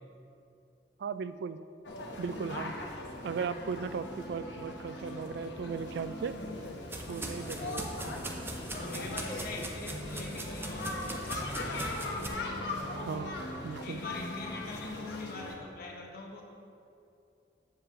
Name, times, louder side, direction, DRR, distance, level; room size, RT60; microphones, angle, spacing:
voice 1, 1.0-1.6 2.2-2.8 3.2-6.3 7.1-8.2 12.9-13.4 13.6-14.0, right 6 dB, 65° right, 14 dB, 0.3 m, -37 dB
sound 1, 1.8-15.5, left 2 dB, 80° left, 1.0 m, -40 dB
sound 2, 5.9-12.3, right 1 dB, 15° right, 0.7 m, -41 dB
voice 2, 8.7-12.1 13.8-16.4, left 2 dB, 55° left, 0 dB, 1.1 m, -43 dB
8.4 x 7.2 x 3.7 m, 2.7 s
head